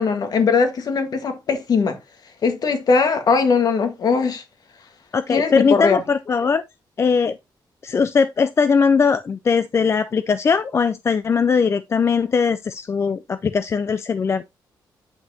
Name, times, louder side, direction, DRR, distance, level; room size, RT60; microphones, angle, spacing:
voice 1, 0.0-2.0 2.4-4.4 5.3-6.0, left 5 dB, 60° left, 1.6 m, -20 dB
voice 2, 5.1-6.6 7.0-7.4 7.8-14.4, left 5 dB, 35° left, 0.4 m, -20 dB
8.9 x 5.4 x 2.8 m
cardioid pair, 115°, 8 cm